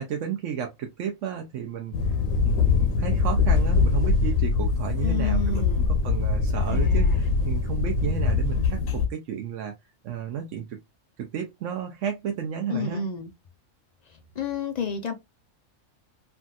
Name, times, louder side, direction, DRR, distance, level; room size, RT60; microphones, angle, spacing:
voice 1, 0.0-1.9 2.4-9.7 10.0-10.8 11.2-13.0, right 8 dB, 70° right, 1.0 m, -33 dB
sound 1, 1.9-9.1, left 4 dB, 85° left, 1.1 m, -23 dB
voice 2, 5.0-5.9 6.7-7.2 12.7-13.3 14.4-15.1, left 5 dB, 60° left, 0.4 m, -31 dB
3.4 x 2.6 x 2.3 m
omnidirectional pair, 1.4 m